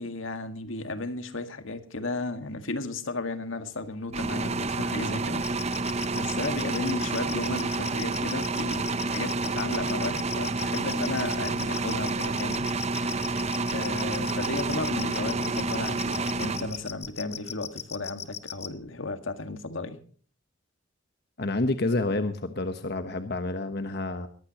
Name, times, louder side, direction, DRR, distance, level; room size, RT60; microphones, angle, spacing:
voice 1, 0.0-5.5 6.1-13.4 13.7-20.0, left 2 dB, 85° left, 2.0 m, -34 dB
sound 1, 4.1-17.1, right 3 dB, 35° right, 0.8 m, -29 dB
sound 2, 5.4-18.7, left 9 dB, 35° left, 1.1 m, -38 dB
voice 2, 21.4-24.3, left 2 dB, 55° left, 1.2 m, -28 dB
22.0 x 15.0 x 3.0 m
head